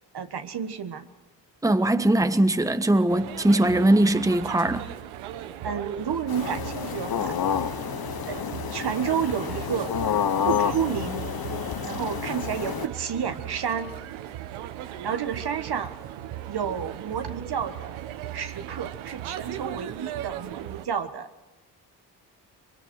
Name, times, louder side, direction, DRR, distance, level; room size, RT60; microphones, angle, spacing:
voice 1, 0.1-1.1 5.6-7.4 8.3-9.9 10.4-11.2 11.8-13.9 15.0-16.0 16.5-17.9 18.3-21.3, right 7 dB, 50° right, 1.5 m, -30 dB
voice 2, 1.6-4.9, right 1 dB, 5° right, 1.2 m, -21 dB
sound 1, 3.1-20.9, right 12 dB, 75° right, 1.0 m, -38 dB
sound 2, 6.3-12.9, left 8 dB, 45° left, 1.1 m, -29 dB
24.5 x 24.0 x 4.6 m
hypercardioid pair, 40°, 49 cm